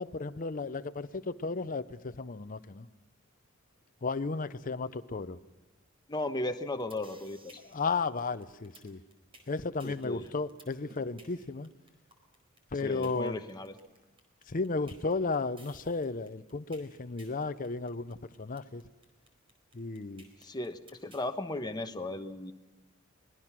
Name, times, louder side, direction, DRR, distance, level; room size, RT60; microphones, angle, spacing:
voice 1, 0.0-2.9 4.0-5.4 7.6-9.0 9.5-11.7 12.7-13.4 14.5-18.8 19.7-20.2, left 3 dB, 40° left, 0.7 m, -34 dB
voice 2, 6.1-7.6 9.8-10.3 12.8-13.7 20.4-22.5, left 2 dB, 20° left, 1.1 m, -36 dB
sound 1, 6.8-21.3, right 2 dB, 25° right, 4.5 m, -57 dB
24.5 x 20.5 x 6.0 m
head